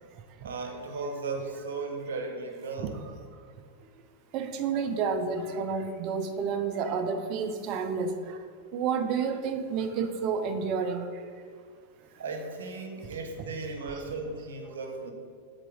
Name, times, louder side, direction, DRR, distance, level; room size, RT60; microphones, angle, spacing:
voice 1, 0.4-3.0 12.2-15.1, right 3 dB, 85° right, 3 dB, 0.9 m, -36 dB
voice 2, 4.3-8.1 8.7-11.1, right 6 dB, 45° right, 7 dB, 0.6 m, -30 dB
7.4 x 3.9 x 3.4 m, 2.1 s
hypercardioid pair, 120°, 0 cm